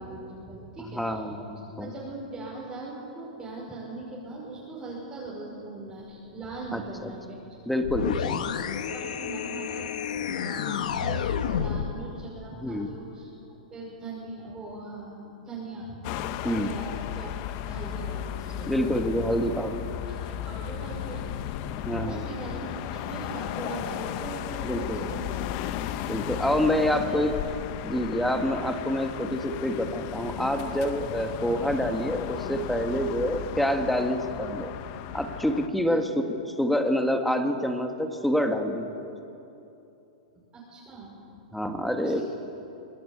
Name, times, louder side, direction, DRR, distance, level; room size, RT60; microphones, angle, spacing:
voice 1, 0.0-1.2 1.8-7.4 8.1-8.2 8.9-13.3 13.7-19.1 20.0-21.3 22.0-25.3 26.4-27.5 27.9-28.0 35.8-36.0 40.5-41.1 42.0-42.2, right 2 dB, 15° right, -6 dB, 5.8 m, -40 dB
voice 2, 0.8-1.9 6.7-7.1 7.6-8.4 12.5-12.9 16.4-16.8 18.7-19.9 21.8-22.2 24.6-25.0 26.1-27.3 27.8-34.7 35.1-39.0 41.5-42.2, equal, ahead, 6 dB, 1.7 m, -27 dB
sound 1, 7.8-12.0, left 8 dB, 80° left, 1.5 m, -30 dB
sound 2, 16.0-35.7, left 11 dB, 45° left, 1.2 m, -35 dB
25.5 x 20.0 x 8.8 m, 2.9 s
hypercardioid pair, 140°, 4 cm